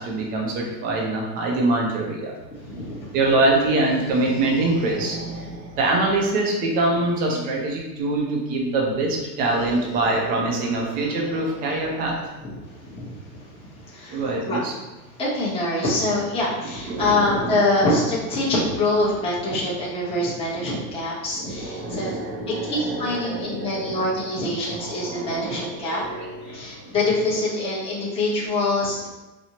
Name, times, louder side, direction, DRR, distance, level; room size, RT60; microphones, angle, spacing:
voice 1, 0.0-2.3 3.1-12.5 14.1-14.7 16.6-18.0 18.6-18.8 21.4-24.3 24.6-26.9, right 2 dB, 20° right, -1 dB, 0.3 m, -25 dB
voice 2, 2.5-3.2 12.4-14.6 15.2-22.2 22.7-26.0 26.4-29.1, left 2 dB, 10° left, -6 dB, 0.7 m, -25 dB
4.3 x 2.0 x 2.8 m, 1.1 s
hypercardioid pair, 120°, 49 cm